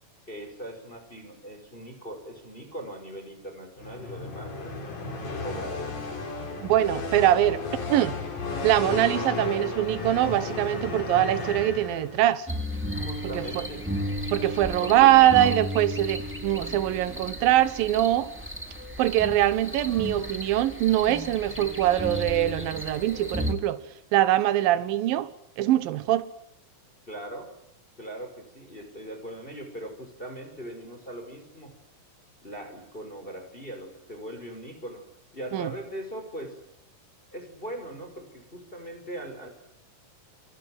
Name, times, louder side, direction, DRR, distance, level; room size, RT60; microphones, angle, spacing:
voice 1, 0.3-4.7 5.4-5.9 12.9-13.9 14.8-15.6 23.8-23.9 27.1-27.5 28.0-31.7 32.4-35.0 35.3-36.6 37.3-39.5, right 1 dB, 15° left, 5.8 m, -40 dB
sound 1, 3.8-12.4, left 3 dB, 60° left, 6.3 m, -34 dB
voice 2, 6.6-7.6 7.9-8.2 8.6-12.5 13.3-13.7 14.3-18.3 19.0-23.8 24.1-25.3 25.6-26.3 35.5-35.7, right 13 dB, 80° right, 2.9 m, -23 dB
sound 2, 12.5-23.5, equal, 5° right, 2.6 m, -34 dB
28.5 x 25.0 x 7.9 m
omnidirectional pair, 4.1 m